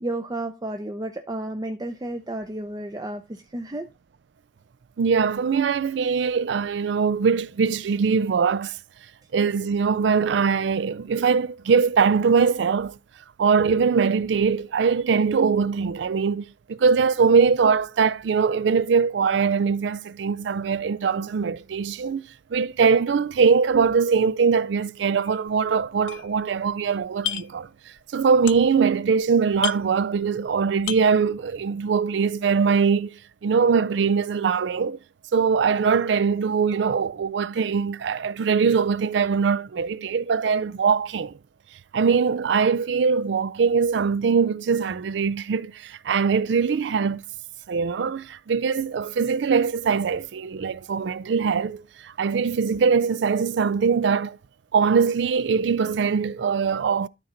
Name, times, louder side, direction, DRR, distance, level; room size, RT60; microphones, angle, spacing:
voice 1, 0.0-3.9, right 1 dB, 20° right, 0.5 m, -32 dB
voice 2, 5.0-8.8 9.3-13.0 13.4-22.2 22.5-27.7 28.1-35.0 35.3-41.3 41.9-47.2 47.7-54.4 54.7-57.1, right 5 dB, 70° right, 0.4 m, -22 dB
sound 1, 25.2-25.5 25.8-26.8 27.0-27.7 28.0-28.9 29.2-29.3 29.5-30.5 30.8-31.2, left 12 dB, 85° left, 0.4 m, -32 dB
12.0 x 4.4 x 3.8 m
head